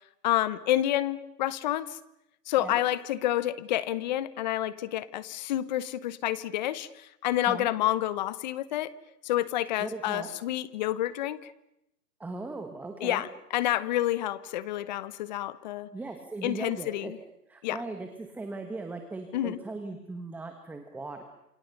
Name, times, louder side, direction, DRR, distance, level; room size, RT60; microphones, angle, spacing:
voice 1, 0.2-2.0 2.5-8.9 9.2-11.5 13.0-15.9 16.4-17.2 17.6-17.8 19.3-19.6, left 13 dB, 30° left, 18 dB, 1.0 m, -29 dB
voice 2, 9.8-10.3 12.2-13.2 15.9-17.1 17.5-21.2, right 3 dB, 5° right, 5 dB, 1.3 m, -38 dB
28.5 x 27.5 x 6.7 m, 0.86 s
hypercardioid pair, 155°, 47 cm